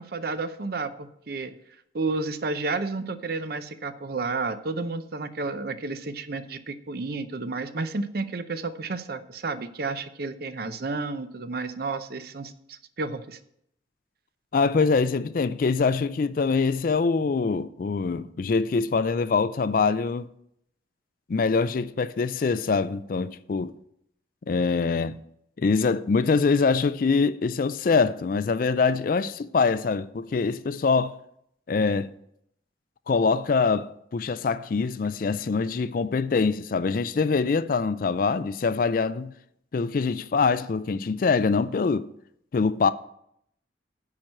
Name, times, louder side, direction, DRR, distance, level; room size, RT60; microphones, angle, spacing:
voice 1, 0.0-1.5 1.9-13.4, right 3 dB, 55° right, 0.6 m, -31 dB
voice 2, 14.5-20.3 21.3-23.7 24.5-25.2 25.6-31.1 31.7-32.1 33.1-39.3 39.7-42.1 42.5-42.9, left 4 dB, 50° left, 0.4 m, -24 dB
9.7 x 4.5 x 7.6 m
head